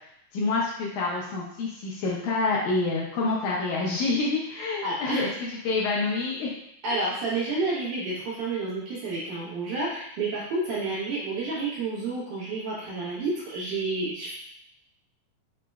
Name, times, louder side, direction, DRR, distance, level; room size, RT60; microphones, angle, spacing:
voice 1, 0.3-5.3 5.6-6.5, left 3 dB, 75° left, -4 dB, 1.9 m, -27 dB
voice 2, 4.8-5.3 6.8-14.4, right 3 dB, 70° right, -6 dB, 2.7 m, -30 dB
5.8 x 3.0 x 2.3 m, 0.74 s
omnidirectional pair, 3.8 m